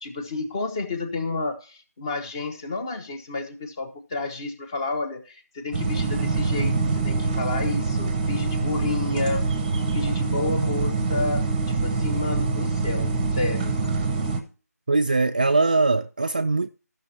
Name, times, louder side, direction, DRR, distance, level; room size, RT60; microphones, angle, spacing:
voice 1, 0.0-9.4 9.9-11.5 11.8-13.8, left 3 dB, 15° left, 0.8 m, -30 dB
sound 1, 5.7-14.4, right 3 dB, 15° right, 0.9 m, -25 dB
voice 2, 14.9-16.7, right 3 dB, 30° right, 0.4 m, -21 dB
14.0 x 6.1 x 4.2 m
figure-of-eight pair, 160°, 9 cm